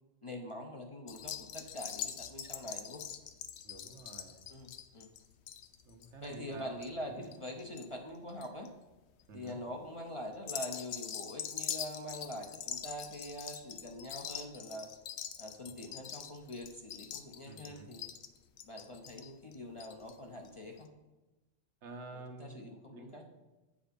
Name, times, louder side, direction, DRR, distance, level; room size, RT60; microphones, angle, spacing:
voice 1, 0.2-3.0 4.5-5.1 6.2-8.7 9.3-14.9 15.4-18.1 18.6-20.9 22.1-23.2, left 1 dB, 35° left, 2 dB, 0.6 m, -44 dB
sound 1, 1.1-7.9 8.1-8.7 9.2-9.5 10.3-20.1 20.4-20.5 20.8-20.9, left 9 dB, 75° left, 0.8 m, -43 dB
voice 2, 3.6-4.4 5.8-6.7 7.1-7.3 9.3-9.6 17.4-17.9 21.8-23.2, right 3 dB, 80° right, 4 dB, 1.3 m, -49 dB
7.8 x 5.0 x 5.2 m, 1.1 s
omnidirectional pair, 1.2 m